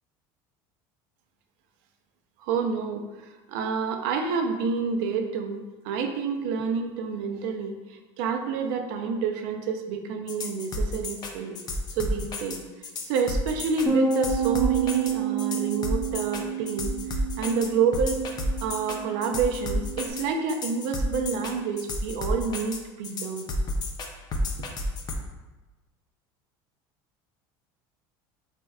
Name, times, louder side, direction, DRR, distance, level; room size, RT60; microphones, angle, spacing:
voice 1, 2.4-11.6 11.9-12.6 13.0-16.9 17.4-18.2 18.6-23.5 24.6-24.7, right 5 dB, 75° right, 5 dB, 0.5 m, -28 dB
sound 1, 10.3-25.1, left 1 dB, 35° left, 0.5 m, -31 dB
Bass guitar, 13.9-20.1, right 6 dB, 15° right, 0.8 m, -30 dB
4.1 x 3.3 x 2.3 m, 1.2 s
supercardioid pair, 115°, 12 cm